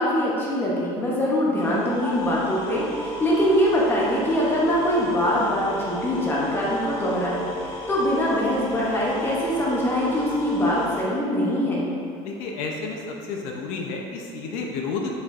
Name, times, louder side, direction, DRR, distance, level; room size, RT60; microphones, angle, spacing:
voice 1, 0.0-11.9, equal, 15° left, -5 dB, 0.6 m, -23 dB
sound 1, 1.6-11.0, equal, 55° left, 1.3 m, -35 dB
voice 2, 12.2-15.1, left 4 dB, 70° left, 1 dB, 0.5 m, -31 dB
4.9 x 4.2 x 2.4 m, 2.4 s
cardioid pair, 160°, 13 cm